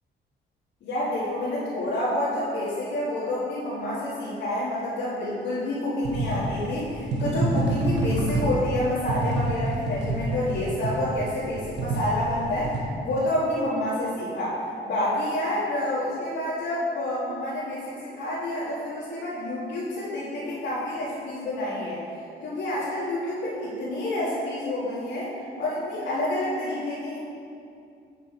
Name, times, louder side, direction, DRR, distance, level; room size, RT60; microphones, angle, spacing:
voice 1, 0.8-12.7 13.0-14.6 14.8-22.0 22.4-25.3 25.6-27.2, left 1 dB, 75° left, -11 dB, 1.9 m, -28 dB
sound 1, 6.0-12.8, right 2 dB, 60° right, 1.4 m, -28 dB
8.5 x 4.7 x 5.0 m, 2.5 s
cardioid pair, 90°, 20 cm